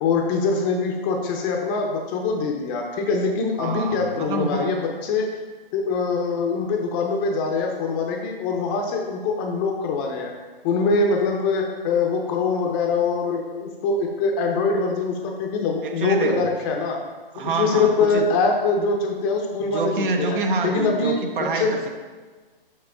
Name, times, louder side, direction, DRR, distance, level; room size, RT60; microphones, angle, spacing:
voice 1, 0.0-5.3 5.7-10.3 10.6-17.0 17.4-20.4 20.6-21.2 21.6-21.7, left 4 dB, 20° left, 2 dB, 0.6 m, -23 dB
voice 2, 3.6-4.8 15.8-16.5 17.3-18.3 19.7-22.0, right 4 dB, 60° right, 4 dB, 0.9 m, -26 dB
6.0 x 5.9 x 3.7 m, 1.4 s
hypercardioid pair, 135°, 29 cm